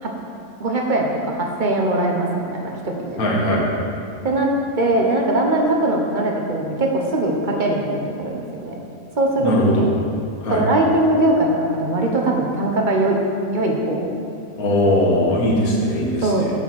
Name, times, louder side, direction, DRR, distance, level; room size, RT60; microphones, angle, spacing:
voice 1, 0.6-2.3 2.6-3.2 4.2-8.8 9.2-9.5 10.5-13.2 13.5-14.1 16.2-16.5, right 1 dB, 45° right, 0 dB, 0.6 m, -21 dB
voice 2, 3.2-3.7 9.4-9.9 10.4-10.6 14.6-16.5, equal, 55° left, -3 dB, 1.8 m, -19 dB
9.1 x 4.3 x 6.0 m, 2.5 s
omnidirectional pair, 1.9 m